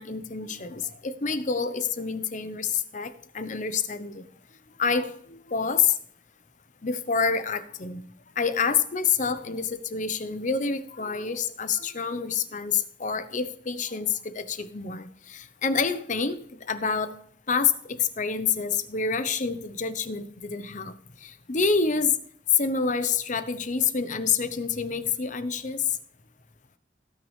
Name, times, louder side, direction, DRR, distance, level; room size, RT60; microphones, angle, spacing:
voice 1, 0.0-4.2 4.8-6.0 6.8-8.0 8.4-17.2 17.5-20.9 21.2-22.2 22.6-25.8, left 5 dB, 40° left, 11 dB, 0.8 m, -27 dB
17.5 x 6.3 x 3.2 m, 0.62 s
head